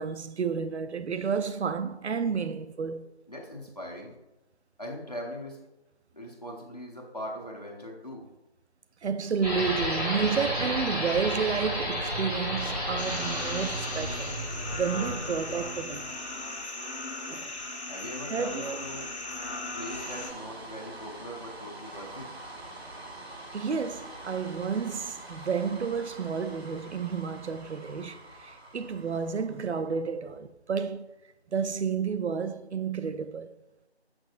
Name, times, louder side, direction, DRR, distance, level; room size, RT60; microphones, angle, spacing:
voice 1, 0.0-3.1 9.0-14.4 14.7-16.1 17.3-17.5 18.3-18.8 23.5-31.1 31.5-33.5, right 6 dB, 85° right, 0.5 m, -31 dB
voice 2, 3.3-4.1 4.8-5.6 6.1-8.3 17.8-19.1 19.7-22.3, equal, 35° left, 0.9 m, -40 dB
sound 1, 9.4-16.0, equal, 35° right, 1.5 m, -32 dB
sound 2, 13.0-20.3, left 2 dB, 80° left, 1.6 m, -37 dB
sound 3, 19.8-30.1, right 2 dB, 70° right, 1.0 m, -45 dB
6.5 x 6.0 x 2.5 m
figure-of-eight pair, 180°, 33 cm